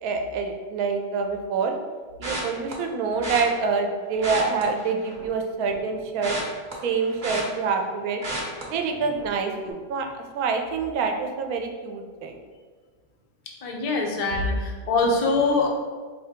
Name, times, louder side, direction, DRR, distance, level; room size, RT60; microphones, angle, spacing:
voice 1, 0.0-1.7 2.2-6.4 6.8-8.2 8.6-12.4, right 5 dB, 85° right, 4 dB, 1.0 m, -26 dB
sound 1, 2.2-2.7 3.2-3.4 4.1-5.4 5.7-7.9 8.2-8.6 9.1-9.4 9.6-9.7, right 1 dB, 35° right, 0.8 m, -33 dB
voice 2, 13.6-15.7, left 3 dB, 70° left, 0 dB, 0.3 m, -23 dB
4.2 x 2.8 x 3.4 m, 1.5 s
omnidirectional pair, 1.5 m